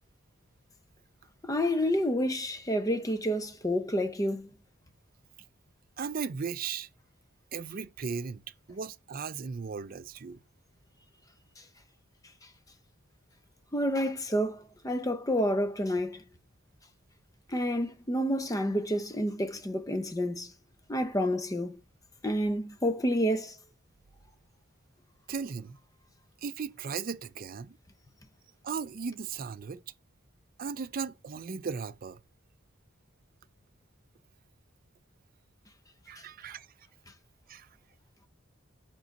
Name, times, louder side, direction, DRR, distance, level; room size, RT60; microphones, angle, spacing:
voice 1, 1.4-4.5 13.7-16.2 17.5-20.5 20.9-21.8 22.2-23.6, equal, 15° left, 0.7 m, -29 dB
voice 2, 6.0-6.9 7.5-8.4 8.7-10.4 25.3-25.8 26.4-27.8 28.6-29.8 30.6-32.2 36.1-36.7 37.5-37.7, right 5 dB, 45° right, 0.4 m, -36 dB
7.7 x 3.9 x 5.3 m
head